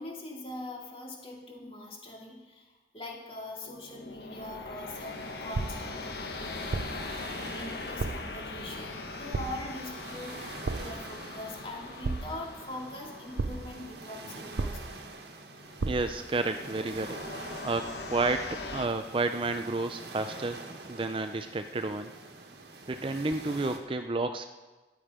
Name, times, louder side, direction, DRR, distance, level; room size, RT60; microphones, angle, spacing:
voice 1, 0.0-15.1 22.5-22.7, left 1 dB, 30° left, -1 dB, 2.3 m, -43 dB
sound 1, 3.6-18.9, left 3 dB, 70° left, 1.1 m, -42 dB
sound 2, 4.9-23.8, right 3 dB, 70° right, 1.5 m, -46 dB
sound 3, 5.5-6.0 6.7-7.1 8.0-8.4 9.3-9.8 10.7-11.1 12.0-12.6 13.4-13.8 14.6-15.1 15.8-16.2, right 3 dB, 85° right, 0.6 m, -34 dB
voice 2, 15.8-20.6 20.9-22.1 22.9-24.5, right 3 dB, 30° right, 8 dB, 0.5 m, -31 dB
13.5 x 11.0 x 5.0 m, 1.2 s
head